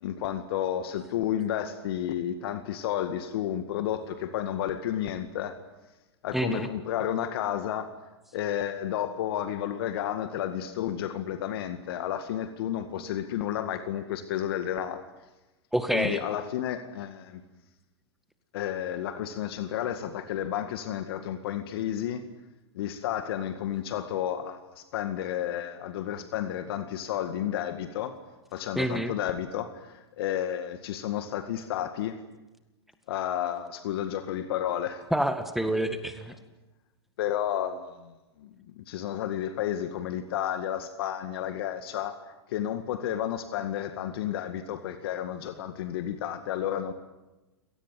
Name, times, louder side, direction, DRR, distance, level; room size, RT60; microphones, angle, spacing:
voice 1, 0.0-5.6 6.2-7.9 8.3-15.0 15.9-17.4 18.5-22.2 22.7-28.2 28.5-32.2 33.1-35.0 37.2-38.1 38.4-42.2 42.5-46.9, left 10 dB, 65° left, 9 dB, 2.0 m, -31 dB
voice 2, 6.3-6.7 15.7-16.2 28.8-29.1 35.1-36.3, right 1 dB, ahead, 8 dB, 1.8 m, -27 dB
28.5 x 18.5 x 9.2 m, 1.1 s
hypercardioid pair, 110°, 14 cm